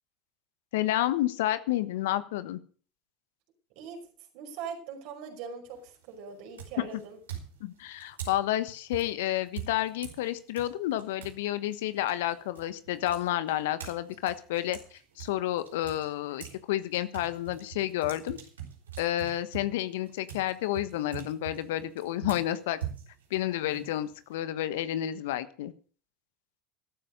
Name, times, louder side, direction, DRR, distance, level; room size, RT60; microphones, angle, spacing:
voice 1, 0.7-2.6 6.8-6.9 7.6-14.8 15.2-18.4 19.0-22.8 23.3-25.7, left 13 dB, 70° left, 13 dB, 1.2 m, -30 dB
voice 2, 3.8-4.1 4.3-7.2, right 6 dB, 60° right, 3 dB, 5.5 m, -41 dB
sound 1, 5.6-6.0 6.5-11.4 11.7-16.6 16.9-24.3, right 10 dB, 85° right, 4.8 m, -43 dB
14.0 x 13.0 x 5.3 m, 0.41 s
hypercardioid pair, 80°, 0 cm